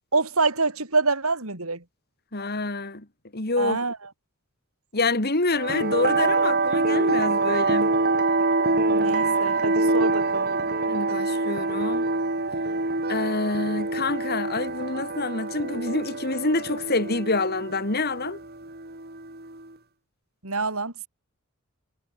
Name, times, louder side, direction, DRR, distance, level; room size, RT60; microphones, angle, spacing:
voice 1, 0.1-1.8 3.6-4.0 8.9-10.5 20.4-20.9, right 3 dB, 80° right, 4.7 m, -26 dB
voice 2, 2.3-3.1 3.3-3.8 4.9-7.9 10.9-12.1 13.1-18.4, left 3 dB, 45° left, 3.0 m, -27 dB
sound 1, 5.5-19.6, right 3 dB, 45° right, 5.3 m, -25 dB
head